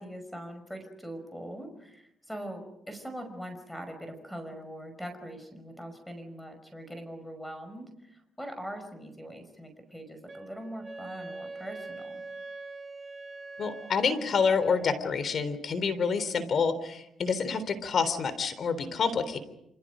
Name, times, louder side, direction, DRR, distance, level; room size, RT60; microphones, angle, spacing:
voice 1, 0.0-12.2, equal, 5° left, 7 dB, 5.5 m, -42 dB
Wind instrument woodwind instrument, 10.3-14.9, right 3 dB, 35° right, 2.2 m, -43 dB
voice 2, 13.6-19.4, left 5 dB, 55° left, 12 dB, 3.6 m, -28 dB
28.0 x 27.5 x 5.1 m, 0.80 s
cardioid pair, 90°, 0 cm